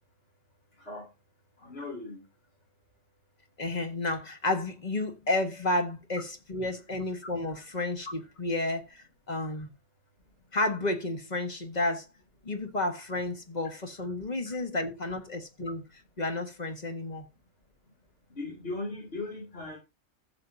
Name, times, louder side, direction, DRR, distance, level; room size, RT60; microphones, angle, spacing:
voice 1, 1.6-2.3 14.5-14.6 18.3-19.8, left 2 dB, 50° left, 3.0 m, -38 dB
voice 2, 3.6-9.7 10.5-12.0 12.4-17.3, left 2 dB, 35° left, 1.6 m, -31 dB
15.0 x 7.5 x 2.7 m
omnidirectional pair, 1.3 m